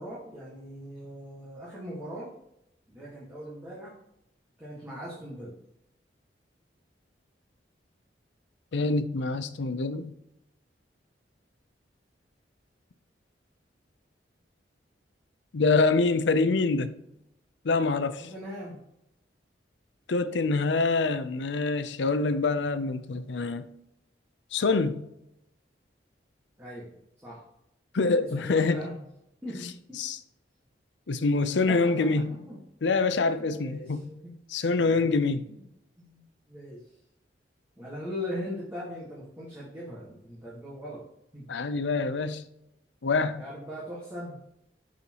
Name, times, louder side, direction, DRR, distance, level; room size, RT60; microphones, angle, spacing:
voice 1, 0.0-2.3 2.9-4.0 4.6-5.6 18.2-18.8 26.6-27.4 28.2-29.0 29.4-30.0 31.7-32.6 33.2-34.4 34.8-35.1 35.3-35.7 36.0-36.9 37.8-41.0 41.3-41.5 43.4-44.4, equal, 15° right, 1.6 m, -40 dB
voice 2, 8.7-10.1 15.5-17.0 17.6-18.2 20.1-23.7 24.5-25.1 27.9-28.8 30.0-30.2 31.1-32.4 32.8-34.1 34.5-35.5 41.5-42.4 43.0-43.4, left 3 dB, 75° left, 0.6 m, -25 dB
6.9 x 6.4 x 3.0 m
head